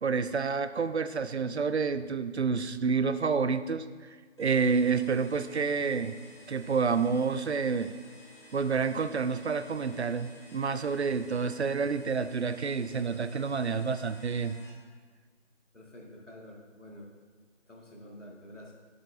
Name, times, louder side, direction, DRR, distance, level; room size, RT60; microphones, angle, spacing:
voice 1, 0.0-3.8 4.4-6.1 6.5-7.9 8.5-14.6, right 5 dB, 65° right, 12 dB, 0.5 m, -29 dB
sound 1, 4.4-14.7, equal, 25° left, 1.4 m, -54 dB
voice 2, 15.7-17.1 17.7-18.7, left 1 dB, 80° left, -1 dB, 2.0 m, -48 dB
9.5 x 7.7 x 2.7 m, 1.5 s
figure-of-eight pair, 165°, 36 cm